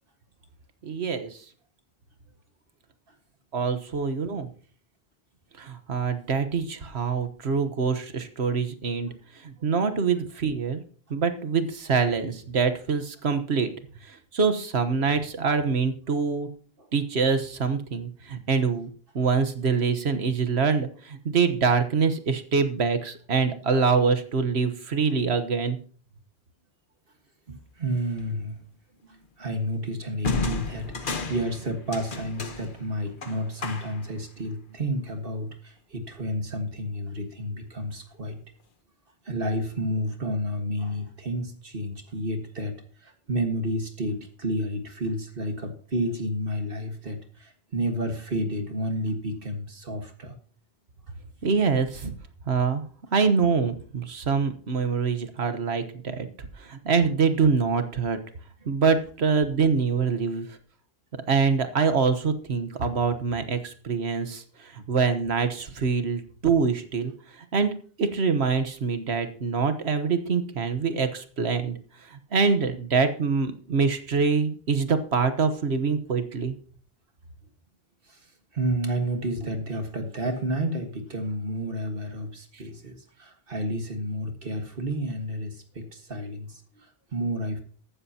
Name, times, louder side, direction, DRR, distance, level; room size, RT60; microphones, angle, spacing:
voice 1, 0.8-1.4 3.5-4.5 5.6-9.1 9.4-10.8 11.1-13.7 14.0-16.5 16.9-18.9 19.1-25.8 51.4-52.1 52.5-52.8 53.1-56.3 56.6-58.2 58.7-60.5 61.3-67.7 68.0-71.8 72.1-76.5, right 5 dB, 85° right, 9 dB, 1.5 m, -25 dB
voice 2, 27.5-28.6 29.0-38.4 39.3-50.3 78.1-78.3 78.5-87.6, equal, 60° right, 5 dB, 1.9 m, -31 dB
sound 1, 28.2-28.4 30.2-34.2, left 4 dB, 55° left, 1.3 m, -32 dB
14.0 x 12.5 x 2.9 m, 0.44 s
omnidirectional pair, 1.1 m